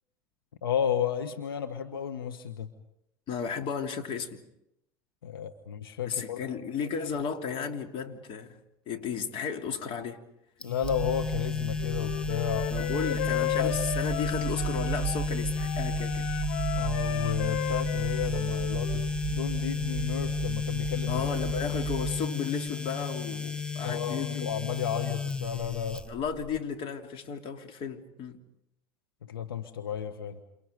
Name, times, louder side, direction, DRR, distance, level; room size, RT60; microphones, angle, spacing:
voice 1, 0.6-2.7 5.2-6.4 10.6-13.8 16.7-21.3 23.8-26.0 29.2-30.4, left 9 dB, 85° left, 1.5 m, -33 dB
voice 2, 3.3-4.4 6.0-8.6 8.9-10.2 12.7-16.3 21.1-24.5 26.1-28.4, left 6 dB, 50° left, 3.3 m, -34 dB
sound 1, 10.6-26.6, left 5 dB, 10° left, 1.2 m, -33 dB
sound 2, 10.8-22.3, right 17 dB, 50° right, 0.9 m, -37 dB
Wind instrument woodwind instrument, 11.8-15.3 15.6-19.1, left 13 dB, 70° left, 0.9 m, -35 dB
29.5 x 29.0 x 5.3 m
hypercardioid pair, 80°, 12 cm